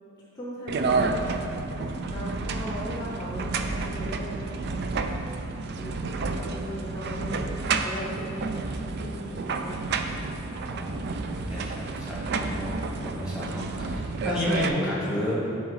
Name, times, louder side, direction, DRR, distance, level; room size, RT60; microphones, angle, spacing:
voice 1, 0.3-4.8 5.7-8.5 8.9-10.2, equal, 20° left, -6 dB, 0.7 m, -38 dB
sound 1, 0.7-14.7, right 3 dB, 50° right, 0.4 m, -30 dB
voice 2, 10.7-15.4, left 1 dB, 5° right, -8 dB, 1.6 m, -31 dB
11.0 x 3.9 x 3.2 m, 2.7 s
head